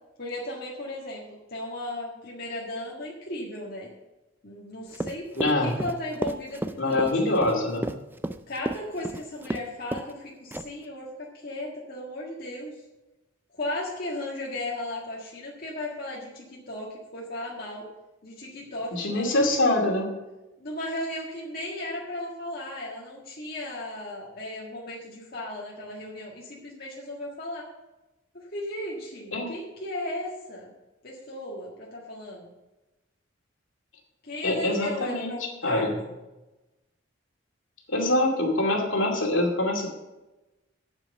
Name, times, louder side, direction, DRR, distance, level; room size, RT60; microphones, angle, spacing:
voice 1, 0.2-3.9 4.4-7.4 8.5-12.7 13.5-17.8 18.2-19.3 20.6-27.7 28.3-30.7 31.0-32.5 34.2-36.1, left 1 dB, 50° left, -4 dB, 1.7 m, -36 dB
Run, 4.9-9.6 9.9-10.1 10.5-10.8, right 1 dB, 10° right, 0.3 m, -32 dB
voice 2, 5.4-5.7 6.8-7.9 18.9-20.1 29.3-29.5 34.4-35.9 37.9-39.9, left 2 dB, 75° left, 0 dB, 2.4 m, -24 dB
9.0 x 7.5 x 6.7 m, 1.0 s
head